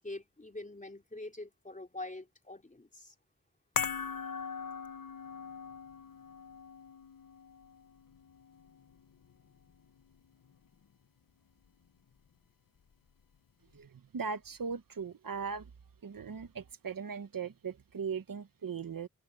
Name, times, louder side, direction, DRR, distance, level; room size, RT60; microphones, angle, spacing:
voice 1, 0.0-3.1, left 2 dB, 25° left, 3.7 m, -44 dB
sound 1, 3.8-10.2 10.4-10.6, left 6 dB, 75° left, 1.2 m, -41 dB
voice 2, 13.7-15.7 16.0-19.1, right 6 dB, 75° right, 1.3 m, -39 dB
wide cardioid pair, 85°, 34 cm